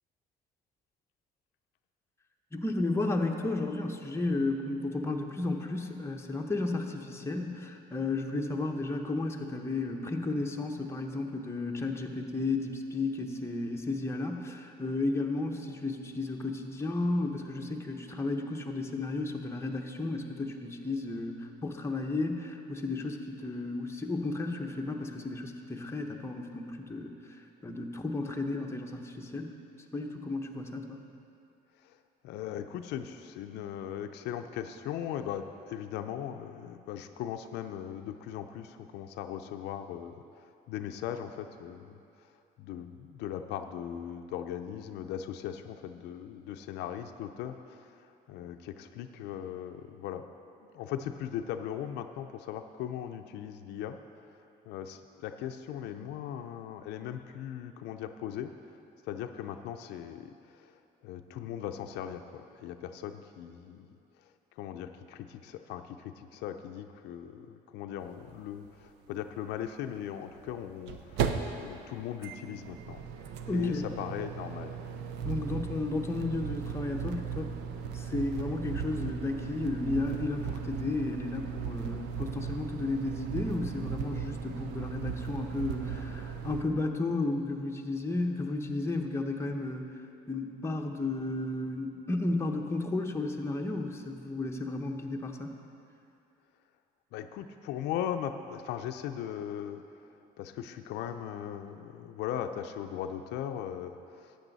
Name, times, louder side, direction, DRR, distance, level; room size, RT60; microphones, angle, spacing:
voice 1, 2.5-27.4 27.6-29.5 29.9-31.0 73.5-73.9 75.2-77.5 77.9-89.9 90.3-95.5, left 2 dB, 15° left, 2 dB, 0.8 m, -33 dB
voice 2, 32.2-42.0 42.6-50.3 50.7-54.0 54.7-58.5 59.0-63.9 64.6-73.0 73.5-74.8 97.1-99.8 100.4-104.4, left 10 dB, 85° left, 7 dB, 0.5 m, -39 dB
sound 1, 68.1-68.2 68.3-68.4 70.3-86.6, right 7 dB, 90° right, 0.6 m, -37 dB
12.0 x 8.5 x 4.0 m, 2.6 s
cardioid pair, 110°, 17 cm